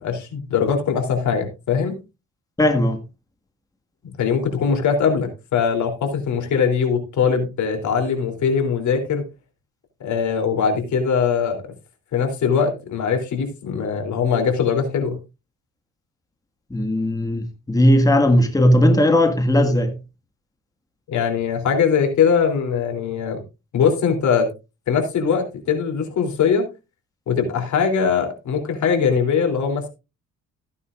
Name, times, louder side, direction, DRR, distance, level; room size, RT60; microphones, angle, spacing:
voice 1, 0.0-2.0 4.2-9.2 10.0-11.7 12.1-15.2 21.1-23.4 23.7-24.5 24.9-26.7 27.3-29.9, left 6 dB, 70° left, 3.3 m, -21 dB
voice 2, 2.6-3.0 16.7-20.0, left 1 dB, 10° left, 1.8 m, -17 dB
15.0 x 9.6 x 2.5 m
cardioid pair, 90°, 30 cm